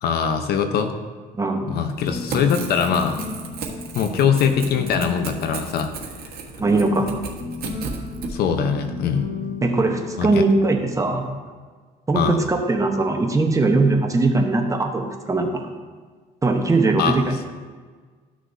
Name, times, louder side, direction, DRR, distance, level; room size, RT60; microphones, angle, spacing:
voice 1, 0.0-0.9 1.7-3.2 3.9-5.9 8.3-9.3 10.2-10.4 12.1-12.4 17.0-17.2, left 7 dB, 70° left, 7 dB, 0.8 m, -22 dB
Crackle / Tearing, 1.9-8.3, right 5 dB, 65° right, 1.4 m, -34 dB
sound 1, 2.0-11.3, left 4 dB, 85° left, 2.2 m, -35 dB
voice 2, 6.6-7.1 9.6-11.3 12.1-15.7 16.4-17.5, right 3 dB, 20° right, 3 dB, 1.0 m, -20 dB
13.0 x 6.2 x 2.7 m, 1.5 s
cardioid pair, 110°, 17 cm